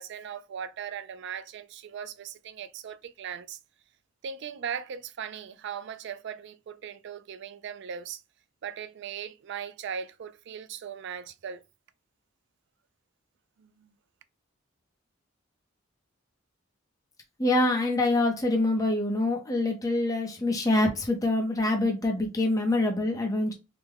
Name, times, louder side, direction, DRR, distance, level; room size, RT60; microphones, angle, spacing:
voice 1, 0.0-3.6 4.2-8.2 8.6-11.6 13.6-13.9, right 7 dB, 60° right, 0.3 m, -38 dB
voice 2, 17.4-23.5, left 2 dB, 20° left, 0.6 m, -25 dB
3.3 x 2.1 x 3.4 m
head